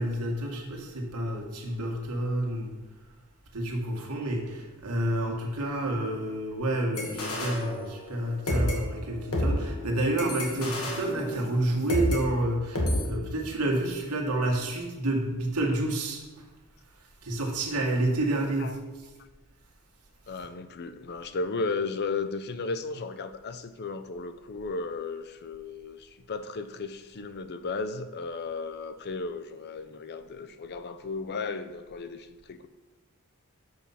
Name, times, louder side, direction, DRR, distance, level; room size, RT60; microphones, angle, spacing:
voice 1, 0.0-2.7 3.5-16.2 17.2-19.1, right 1 dB, 85° right, 0 dB, 1.6 m, -29 dB
sound 1, 7.0-8.2 8.5-12.2 12.8-13.0, left 1 dB, 75° left, 1.6 m, -30 dB
voice 2, 20.3-32.7, left 4 dB, 45° left, 10 dB, 0.5 m, -35 dB
6.7 x 5.3 x 5.6 m, 1.2 s
head